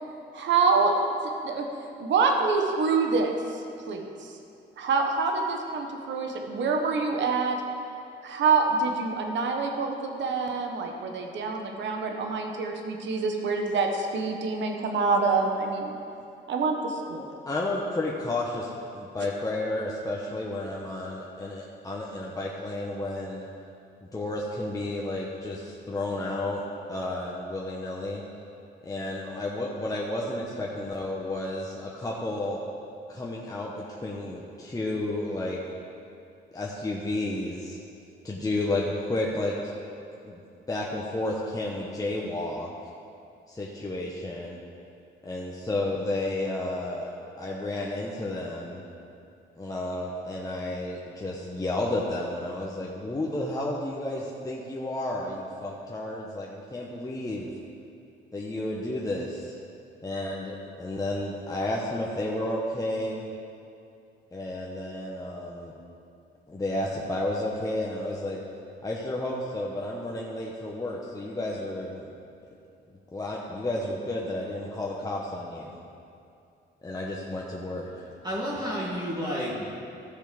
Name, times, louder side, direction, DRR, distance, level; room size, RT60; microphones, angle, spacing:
voice 1, 0.3-0.9 1.4-1.7 2.0-4.3 4.8-7.6 8.2-15.9 16.5-17.2, right 4 dB, 65° right, 3 dB, 1.3 m, -26 dB
voice 2, 17.1-23.5 24.1-26.6 26.9-28.2 28.8-32.6 33.1-35.6 36.5-37.8 38.2-39.7 40.2-40.4 40.7-42.7 43.5-44.6 45.2-47.1 47.4-48.8 49.6-57.5 58.3-59.6 60.0-63.3 64.3-65.7 66.5-68.4 68.8-72.1 73.1-75.8 76.8-78.0, left 1 dB, 15° left, -3 dB, 1.1 m, -32 dB
voice 3, 78.2-79.7, equal, 20° right, -7 dB, 2.2 m, -30 dB
15.0 x 6.3 x 5.1 m, 2.6 s
cardioid pair, 90°, 20 cm